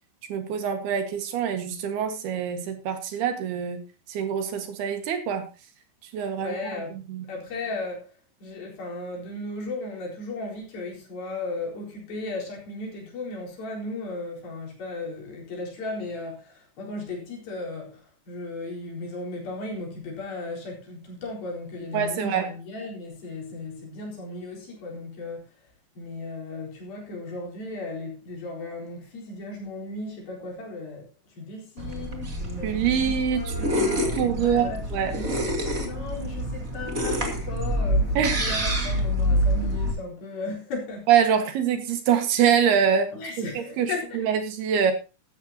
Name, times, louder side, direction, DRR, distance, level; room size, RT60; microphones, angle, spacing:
voice 1, 0.3-3.8 4.1-5.5 6.1-6.6 7.1-7.3 21.9-22.5 32.6-35.1 38.2-38.4 41.1-43.1 43.6-44.9, right 8 dB, 75° right, 3.7 m, -25 dB
voice 2, 6.2-25.5 26.0-35.5 35.8-41.1 43.1-44.2, left 2 dB, 60° left, 5.9 m, -36 dB
sound 1, 31.8-39.9, equal, 25° right, 2.3 m, -27 dB
14.5 x 13.0 x 2.9 m
omnidirectional pair, 4.7 m